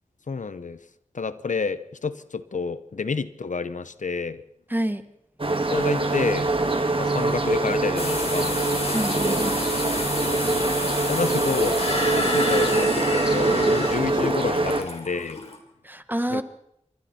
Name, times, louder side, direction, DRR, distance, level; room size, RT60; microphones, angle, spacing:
voice 1, 0.3-0.8 1.1-4.4 5.7-6.5 7.0-8.5 10.8-11.8 12.1-15.4 16.3-16.4, left 4 dB, 80° left, 14 dB, 0.9 m, -29 dB
voice 2, 4.7-5.0 8.9-9.6 15.8-16.4, right 1 dB, 15° right, 11 dB, 1.5 m, -27 dB
sound 1, 5.4-14.8, right 2 dB, 45° right, 2.1 m, -24 dB
sound 2, 8.0-15.6, left 2 dB, 55° left, 4.3 m, -29 dB
27.0 x 23.5 x 4.4 m, 0.77 s
wide cardioid pair, 60°, 13 cm